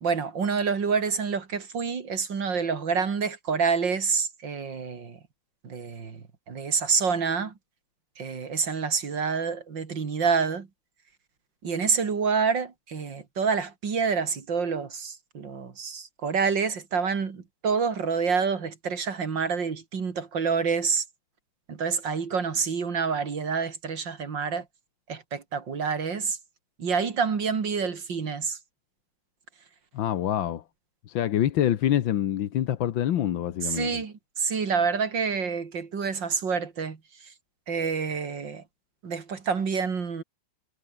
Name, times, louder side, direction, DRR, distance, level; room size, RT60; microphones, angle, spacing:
voice 1, 0.0-5.2 5.6-7.5 8.2-10.7 11.6-21.0 21.7-24.6 25.1-26.4 26.8-28.6 33.6-37.0 37.7-38.6 39.0-40.2, right 5 dB, 60° right, 3.1 m, -27 dB
voice 2, 29.9-30.6 31.1-34.0, left 11 dB, 70° left, 1.7 m, -26 dB
omnidirectional pair, 2.3 m